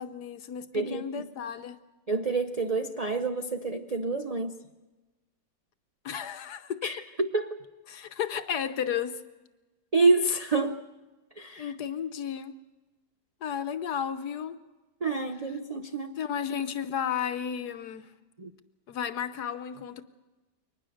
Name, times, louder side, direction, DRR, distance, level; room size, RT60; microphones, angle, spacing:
voice 1, 0.0-1.8 6.0-6.9 7.9-9.2 11.6-12.6 13.4-14.6 16.2-18.1 18.9-20.0, left 8 dB, 70° left, 1.4 m, -33 dB
voice 2, 0.7-1.2 2.1-4.5 6.8-7.6 9.9-10.8 11.4-11.7 15.0-16.1 18.4-18.5, right 3 dB, 50° right, 0.4 m, -27 dB
23.0 x 19.5 x 6.4 m
omnidirectional pair, 1.8 m